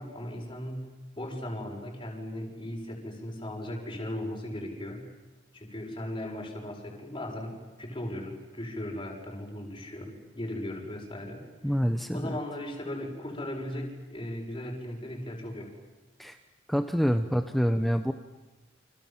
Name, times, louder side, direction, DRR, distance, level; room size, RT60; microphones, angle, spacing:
voice 1, 0.0-5.1 5.5-11.8 12.1-15.7, left 1 dB, 25° left, 0 dB, 6.9 m, -37 dB
voice 2, 11.6-12.4 16.2-16.4 16.7-18.1, equal, ahead, 8 dB, 1.0 m, -26 dB
29.5 x 26.5 x 7.6 m, 1.2 s
head